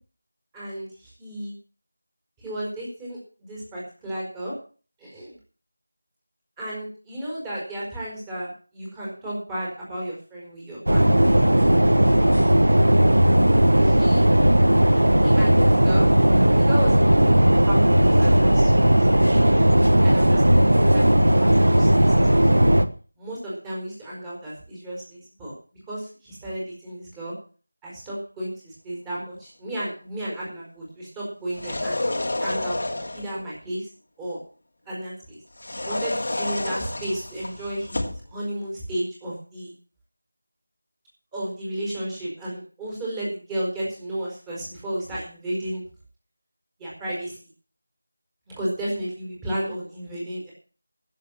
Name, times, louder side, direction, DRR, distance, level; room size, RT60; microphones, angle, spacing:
voice 1, 0.5-0.9 1.2-1.5 2.4-4.5 5.0-5.3 6.6-11.3 13.8-14.2 15.2-16.1 16.6-19.5 20.0-20.6 20.9-22.5 23.2-25.5 25.9-27.3 27.8-33.9 34.2-34.4 34.8-35.4 35.8-38.0 38.3-39.7 41.3-45.8 46.8-47.4 48.5-50.5, right 1 dB, 10° right, -6 dB, 5.0 m, -33 dB
sound 1, 10.9-22.9, right 1 dB, 70° right, 1.5 m, -17 dB
sound 2, 31.5-33.4 35.6-38.3, left 2 dB, 50° left, 2.4 m, -29 dB
15.0 x 7.8 x 7.4 m, 0.40 s
figure-of-eight pair, 170°, 0 cm